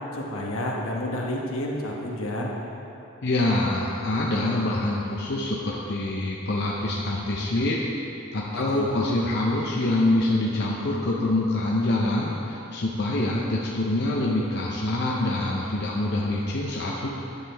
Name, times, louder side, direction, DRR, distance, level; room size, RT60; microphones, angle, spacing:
voice 1, 0.1-2.5 8.5-8.9, left 1 dB, 75° left, -2 dB, 1.2 m, -30 dB
voice 2, 3.2-7.8 8.3-17.1, left 2 dB, 50° left, -4 dB, 0.6 m, -25 dB
10.5 x 7.3 x 3.4 m, 3.0 s
head